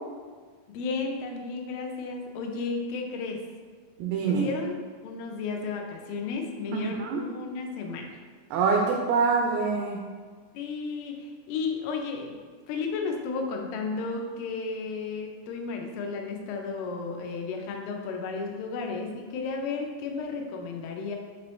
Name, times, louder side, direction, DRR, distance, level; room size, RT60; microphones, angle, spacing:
voice 1, 0.7-3.4 4.2-8.2 10.5-12.3 12.7-21.2, left 4 dB, 80° left, 2 dB, 2.1 m, -33 dB
voice 2, 4.0-4.5 6.7-7.2 8.5-10.1, right 5 dB, 80° right, 0 dB, 2.3 m, -25 dB
6.0 x 2.8 x 3.1 m, 1.5 s
omnidirectional pair, 4.5 m